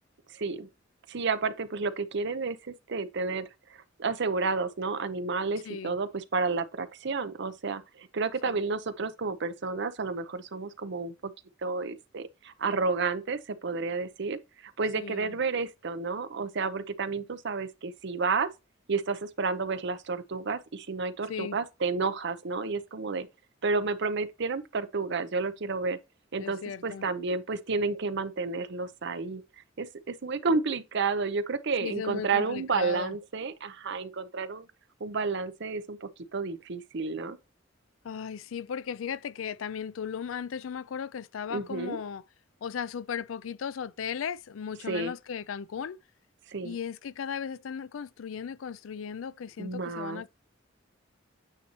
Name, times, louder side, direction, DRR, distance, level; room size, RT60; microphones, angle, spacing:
voice 1, 0.3-0.7 1.1-11.3 11.6-18.5 18.9-23.3 23.6-26.0 26.3-29.4 29.8-34.7 35.0-37.4 41.5-42.0 44.9-45.1 46.5-46.8 49.6-50.2, right 4 dB, 60° right, 0.7 m, -31 dB
voice 2, 5.6-6.0 8.4-8.6 15.0-15.4 21.3-21.6 26.4-27.1 31.8-33.2 38.0-42.2 42.6-46.0 46.6-50.3, left 7 dB, 85° left, 0.4 m, -36 dB
9.0 x 3.1 x 4.2 m
head